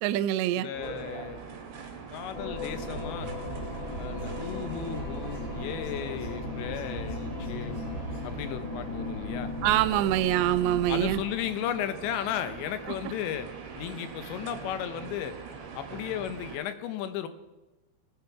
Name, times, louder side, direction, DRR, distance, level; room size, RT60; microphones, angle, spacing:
voice 1, 0.0-0.7 9.6-11.2, right 13 dB, 85° right, 13 dB, 2.7 m, -25 dB
voice 2, 0.5-1.4 2.1-3.3 4.0-7.8 8.2-9.5 10.9-13.5 13.8-15.4 15.7-17.3, left 10 dB, 90° left, 10 dB, 3.2 m, -35 dB
sound 1, 0.7-16.6, right 6 dB, 55° right, 2.2 m, -43 dB
sound 2, 2.3-11.2, left 2 dB, 70° left, 4.6 m, -37 dB
sound 3, 2.7-8.5, right 3 dB, 30° left, 1.6 m, -42 dB
18.5 x 7.9 x 4.7 m, 1.1 s
omnidirectional pair, 5.1 m